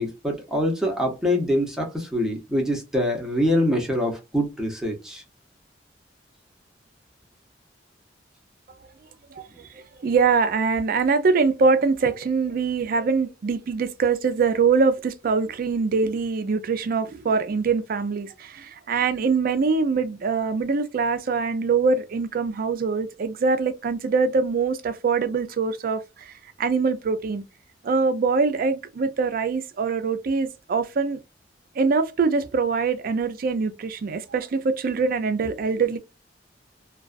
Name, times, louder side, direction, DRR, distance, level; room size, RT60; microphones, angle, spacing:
voice 1, 0.0-5.2, left 1 dB, 5° right, 0.7 m, -24 dB
voice 2, 9.7-26.3 26.6-27.4 27.8-31.2 31.8-36.0, right 4 dB, 50° right, 0.4 m, -23 dB
2.3 x 2.3 x 2.4 m
head